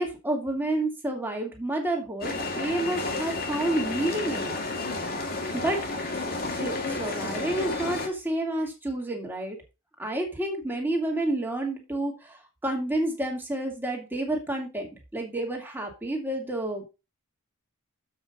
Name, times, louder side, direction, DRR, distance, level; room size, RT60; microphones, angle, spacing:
voice 1, 0.0-4.6 5.6-5.8 6.6-9.6 10.0-12.4 12.6-16.9, right 1 dB, 10° right, 1 dB, 2.3 m, -29 dB
sound 1, 2.2-8.1, left 3 dB, 45° left, 1.9 m, -31 dB
7.6 x 5.6 x 5.3 m, 0.27 s
head